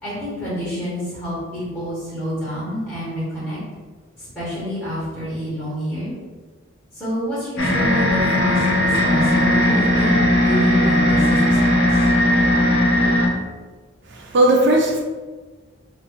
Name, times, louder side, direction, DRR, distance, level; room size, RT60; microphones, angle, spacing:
voice 1, 0.0-3.6 4.2-6.1 6.9-11.8, equal, 5° left, -11 dB, 1.2 m, -28 dB
sound 1, 7.6-13.3, left 1 dB, 60° left, 0.7 m, -17 dB
voice 2, 14.1-15.0, right 1 dB, 60° right, 0 dB, 0.5 m, -17 dB
2.8 x 2.8 x 3.5 m, 1.3 s
head